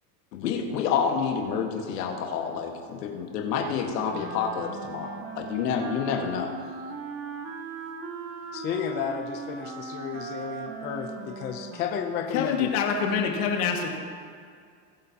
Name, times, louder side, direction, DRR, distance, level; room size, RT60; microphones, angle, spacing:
voice 1, 0.3-6.5, left 6 dB, 90° left, 2 dB, 1.7 m, -28 dB
Wind instrument woodwind instrument, 4.1-12.7, right 4 dB, 30° right, 0.9 m, -39 dB
voice 2, 8.5-12.7, left 7 dB, 25° left, 4 dB, 0.5 m, -32 dB
voice 3, 12.3-14.0, left 6 dB, 65° left, 1 dB, 2.0 m, -26 dB
20.0 x 8.2 x 2.9 m, 2.2 s
supercardioid pair, 155°, 47 cm